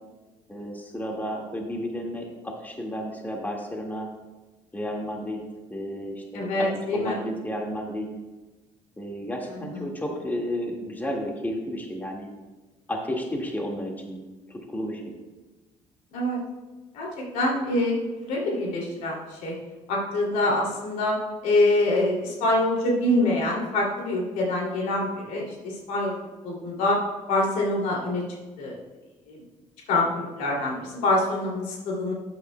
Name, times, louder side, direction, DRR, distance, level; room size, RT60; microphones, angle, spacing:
voice 1, 0.5-4.1 4.7-5.4 5.7-8.1 9.0-12.3 12.9-14.2 14.5-15.2, equal, 15° left, 0 dB, 1.8 m, -32 dB
voice 2, 6.3-7.2 9.5-9.9 16.1-16.4 16.9-18.0 18.2-19.5 19.9-21.2 21.4-26.1 26.4-27.0 27.3-28.2 28.6-28.8 29.3-29.4 29.9-32.1, left 1 dB, 85° left, -2 dB, 2.6 m, -25 dB
12.5 x 9.0 x 2.2 m, 1.2 s
cardioid pair, 85°, 13 cm